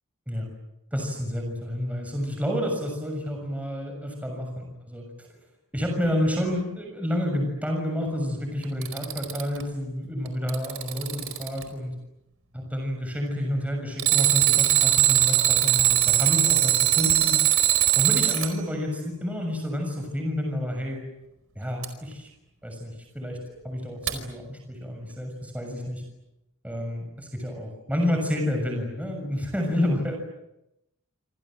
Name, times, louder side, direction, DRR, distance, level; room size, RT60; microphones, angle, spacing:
voice 1, 0.9-5.3 5.7-11.9 12.5-17.4 18.0-21.0 21.5-22.3 22.6-23.4 23.6-26.0 26.6-30.2, left 1 dB, 5° right, 2 dB, 6.7 m, -29 dB
Alarm, 8.6-9.6 10.3-11.6 14.0-18.5 21.8-21.9 24.1-24.2, right 13 dB, 70° right, 4.8 m, -21 dB
27.5 x 27.5 x 7.8 m, 0.89 s
head